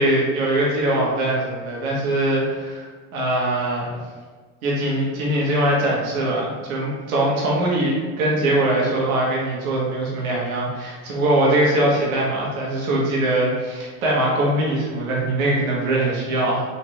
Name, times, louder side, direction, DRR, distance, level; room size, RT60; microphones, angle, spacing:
voice 1, 0.0-4.0 4.6-16.6, right 1 dB, 90° right, -4 dB, 1.2 m, -22 dB
3.2 x 2.8 x 4.5 m, 1.4 s
supercardioid pair, 90°, 41 cm